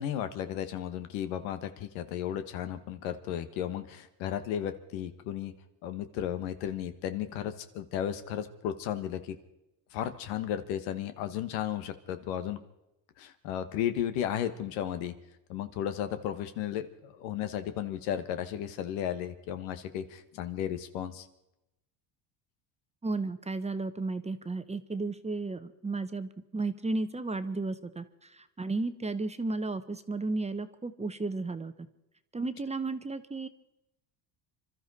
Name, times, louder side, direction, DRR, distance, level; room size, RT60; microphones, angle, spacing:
voice 1, 0.0-5.5 5.8-9.4 9.9-12.6 13.2-15.1 15.5-21.3, left 10 dB, 90° left, 10 dB, 1.4 m, -34 dB
voice 2, 23.0-31.7 32.3-33.5, right 3 dB, 15° right, 10 dB, 0.8 m, -33 dB
26.5 x 13.0 x 4.1 m, 0.89 s
supercardioid pair, 100°, 49 cm